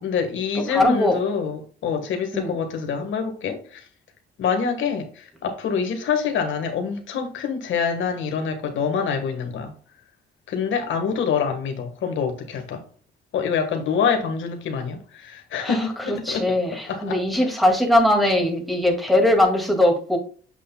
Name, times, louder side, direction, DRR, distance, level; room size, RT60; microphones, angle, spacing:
voice 1, 0.0-3.9 4.4-9.7 10.5-12.8 13.3-16.5 16.9-17.2, left 6 dB, 75° left, 1.5 m, -26 dB
voice 2, 0.6-1.2 2.3-2.6 15.6-20.2, left 1 dB, ahead, 2.1 m, -20 dB
7.7 x 6.5 x 2.2 m
cardioid pair, 90°, 20 cm